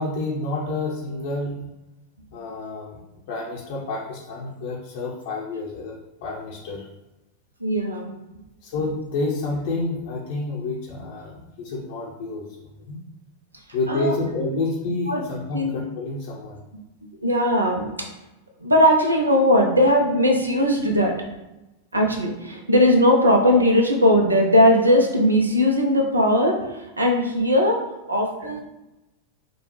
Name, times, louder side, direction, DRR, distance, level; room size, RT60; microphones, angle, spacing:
voice 1, 0.0-1.7 2.3-3.0 3.3-5.9 6.2-6.9 8.6-12.4 12.8-13.0 13.7-16.6 28.4-28.5, left 2 dB, 50° left, -4 dB, 0.7 m, -29 dB
voice 2, 7.6-8.1 13.9-14.1 15.1-15.2 15.5-15.7 17.0-18.1 18.6-21.1 21.9-28.6, left 1 dB, 80° right, 2 dB, 0.6 m, -19 dB
5.1 x 2.3 x 3.1 m, 0.99 s
figure-of-eight pair, 90°, 0 cm